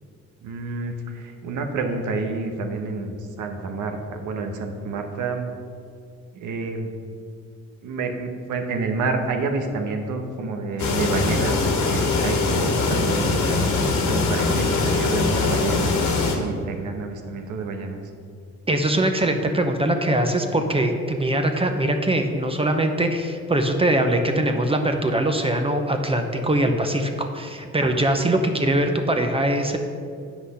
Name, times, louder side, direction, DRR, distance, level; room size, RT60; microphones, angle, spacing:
voice 1, 0.4-5.5 6.3-7.0 7.8-18.0 27.8-28.0, right 3 dB, 80° right, 5 dB, 1.1 m, -29 dB
sound 1, 10.8-16.4, left 3 dB, 70° left, 1.5 m, -22 dB
voice 2, 18.7-29.8, right 1 dB, 20° right, 5 dB, 0.8 m, -22 dB
8.3 x 6.0 x 5.6 m, 2.3 s
cardioid pair, 90°, 30 cm